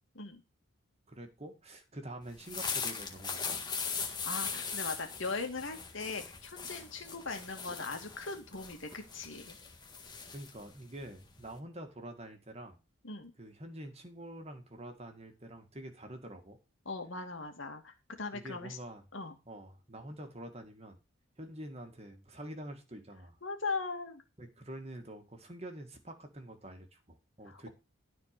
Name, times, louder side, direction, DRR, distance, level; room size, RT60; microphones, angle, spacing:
voice 1, 1.1-3.6 10.3-12.8 13.4-16.6 18.3-19.0 19.5-21.0 21.4-23.4 24.4-27.7, right 1 dB, 30° right, 6 dB, 1.9 m, -46 dB
sound 1, 2.3-11.6, left 5 dB, 20° left, 1.8 m, -40 dB
voice 2, 4.3-9.6 13.0-13.3 16.9-18.8 19.1-19.4 23.4-24.2 27.5-27.7, left 3 dB, 65° left, 5 dB, 2.4 m, -39 dB
13.5 x 4.6 x 6.8 m, 0.28 s
head